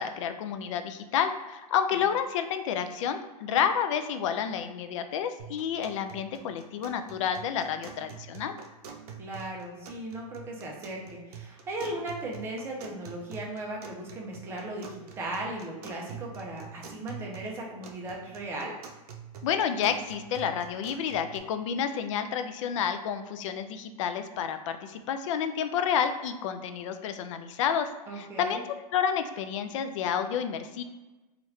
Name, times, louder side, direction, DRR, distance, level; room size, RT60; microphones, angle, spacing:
voice 1, 0.0-8.6 19.4-27.9 28.2-28.6 28.9-30.8, left 8 dB, 55° left, 8 dB, 0.4 m, -30 dB
sound 1, 5.4-21.4, right 7 dB, 80° right, 0.6 m, -46 dB
voice 2, 9.2-18.7 28.1-28.6, right 1 dB, 10° right, -2 dB, 0.5 m, -37 dB
3.0 x 2.4 x 3.1 m, 1.1 s
supercardioid pair, 155°, 19 cm